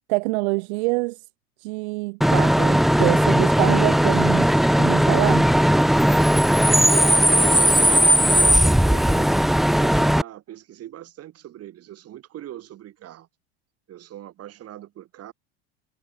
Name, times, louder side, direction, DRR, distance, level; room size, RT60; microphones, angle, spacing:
voice 1, 0.1-1.2 1.6-5.5, right 27 dB, 70° right, 1.0 m, -26 dB
Bus / Idling / Screech, 2.2-10.2, equal, ahead, 0.3 m, -17 dB
voice 2, 7.0-13.3 13.9-15.3, right 12 dB, 45° right, 4.3 m, -41 dB
hypercardioid pair, 95°, 34 cm